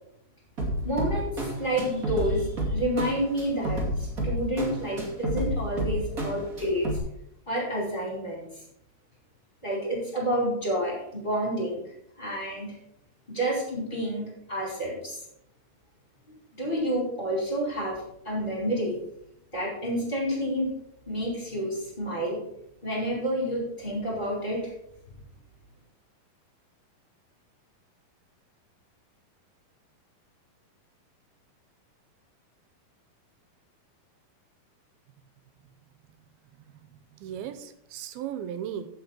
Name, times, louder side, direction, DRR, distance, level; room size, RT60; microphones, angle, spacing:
sound 1, 0.6-7.0, right 1 dB, 30° right, 2.1 m, -31 dB
voice 1, 0.8-6.9 7.5-8.4 9.6-11.8 12.2-12.7 13.3-15.2 16.6-19.0 19.5-20.7 21.1-22.4 22.8-24.6, equal, 10° left, -4 dB, 4.5 m, -29 dB
voice 2, 36.8-38.9, right 9 dB, 90° right, 10 dB, 2.6 m, -37 dB
15.0 x 5.9 x 4.4 m, 0.76 s
omnidirectional pair, 4.3 m